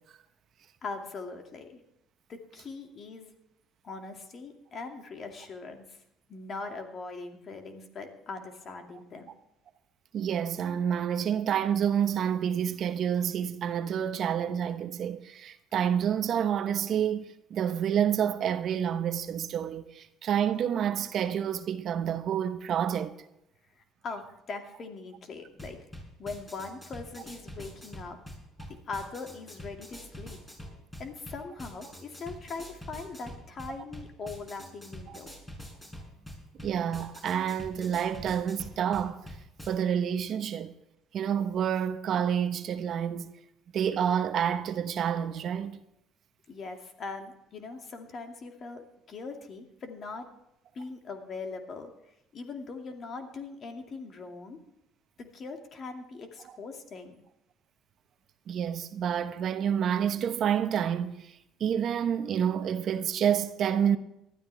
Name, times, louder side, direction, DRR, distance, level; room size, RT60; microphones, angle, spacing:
voice 1, 0.8-1.8 2.3-3.3 3.8-6.0 6.3-9.3 24.0-25.8 26.2-28.2 28.7-30.4 31.0-35.3 46.5-50.3 50.7-54.6 55.2-57.2, left 4 dB, 50° left, 2.4 m, -41 dB
voice 2, 10.1-23.1 35.1-35.2 36.6-39.2 39.7-40.7 41.1-43.3 43.7-45.8 58.5-61.3 61.6-64.0, right 8 dB, 55° right, 1.0 m, -28 dB
sound 1, 25.5-39.7, equal, 20° left, 5.9 m, -46 dB
19.5 x 12.5 x 3.5 m
supercardioid pair, 80°, 0 cm